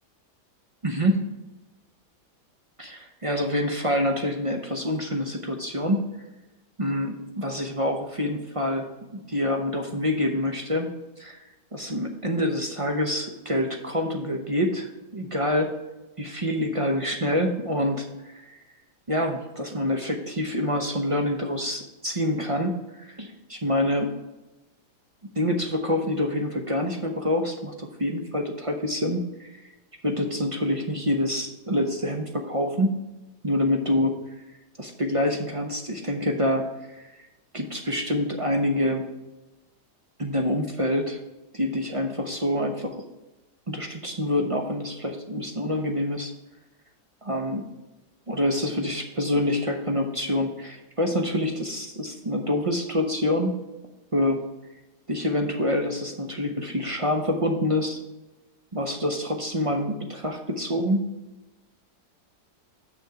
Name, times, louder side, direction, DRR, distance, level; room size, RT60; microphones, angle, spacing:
voice 1, 0.8-1.2 2.8-6.1 6.8-10.9 11.2-11.4 11.7-15.7 16.2-18.5 19.1-24.1 25.4-29.6 30.0-33.0 33.4-34.1 34.8-37.1 37.5-39.0 40.2-41.2 41.5-43.0 43.7-46.3 47.2-47.6 48.3-53.6 54.1-54.4 55.1-58.0 58.7-61.0, left 1 dB, 35° right, 3 dB, 0.5 m, -26 dB
6.6 x 6.3 x 4.7 m, 1.0 s
omnidirectional pair, 1.8 m